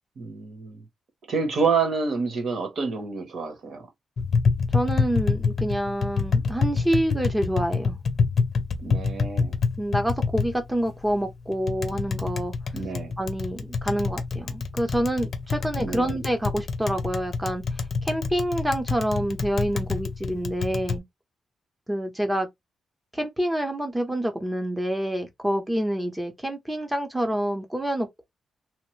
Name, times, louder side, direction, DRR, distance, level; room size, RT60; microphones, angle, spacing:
voice 1, 0.2-0.8 1.3-3.9 8.8-9.5 12.7-13.1 15.8-16.1, right 5 dB, 60° right, 1.1 m, -28 dB
Tap, 4.2-21.0, left 4 dB, 45° left, 0.6 m, -27 dB
voice 2, 4.7-8.0 9.8-12.5 13.2-17.6 18.0-21.0 21.9-22.5 23.1-28.2, right 1 dB, 10° right, 0.8 m, -27 dB
3.0 x 2.1 x 3.2 m
wide cardioid pair, 145°, 0 cm